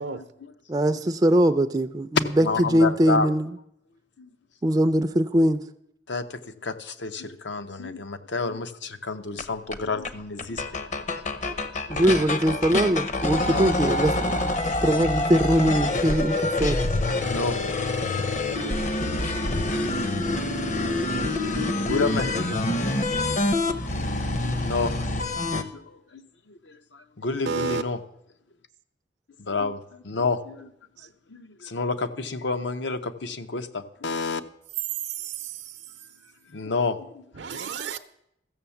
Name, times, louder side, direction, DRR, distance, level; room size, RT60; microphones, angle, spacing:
voice 1, 0.1-0.5 2.4-3.3 4.2-4.3 6.1-10.8 11.1-11.4 11.7-12.2 13.4-13.7 17.2-17.6 19.7-19.8 21.8-23.4 24.0-25.0 25.7-28.0 29.4-30.7 31.3-34.4 36.5-37.2 37.5-37.6, left 3 dB, 80° left, 0.8 m, -30 dB
voice 2, 0.7-3.5 4.6-5.6 11.9-16.8, right 1 dB, 20° right, 0.4 m, -22 dB
sound 1, 9.4-9.5 9.7-9.8 10.0-10.1 10.4-25.6, left 2 dB, 40° left, 0.8 m, -26 dB
voice 3, 27.5-27.8 30.2-30.3 31.0-31.1 35.0-35.8 37.4-38.0, right 5 dB, 75° right, 0.6 m, -32 dB
14.5 x 7.1 x 7.0 m
head